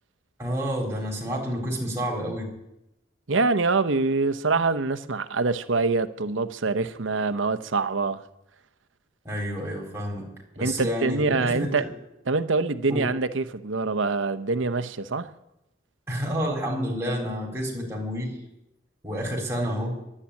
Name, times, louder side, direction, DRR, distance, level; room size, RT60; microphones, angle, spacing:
voice 1, 0.4-2.5 9.2-10.3 10.6-11.9 12.9-13.1 16.1-18.4 19.0-19.9, equal, 10° right, 3.8 m, -29 dB
voice 2, 3.3-8.2 10.6-11.9 12.3-15.3, right 3 dB, 80° right, 0.8 m, -25 dB
11.5 x 10.0 x 9.7 m
head